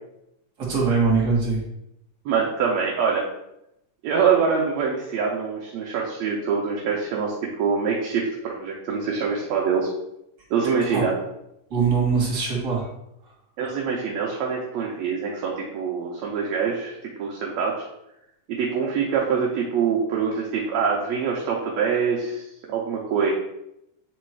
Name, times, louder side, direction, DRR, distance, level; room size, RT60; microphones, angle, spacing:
voice 1, 0.6-1.6 10.9-11.0 11.7-12.9, right 5 dB, 35° right, -4 dB, 2.6 m, -22 dB
voice 2, 2.3-3.3 4.0-7.3 7.6-9.9 10.5-11.1 13.6-17.8 18.5-23.3, right 6 dB, 70° right, -2 dB, 2.0 m, -24 dB
8.5 x 3.7 x 4.6 m, 0.82 s
omnidirectional pair, 3.6 m